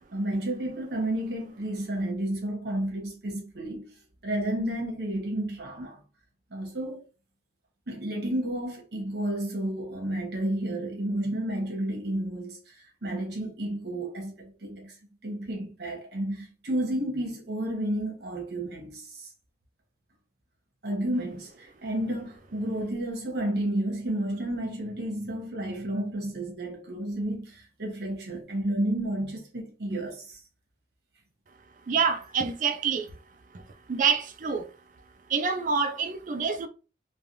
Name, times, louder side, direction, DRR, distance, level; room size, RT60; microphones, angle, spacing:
voice 1, 0.1-3.9 4.2-6.0 6.5-7.0 7.9-12.7 13.0-14.9 15.2-19.3 20.8-30.4, right 1 dB, 70° right, 1.0 m, -31 dB
voice 2, 31.9-33.1 33.9-34.7 35.3-36.7, right 5 dB, 45° right, 0.4 m, -26 dB
3.2 x 2.2 x 2.6 m
head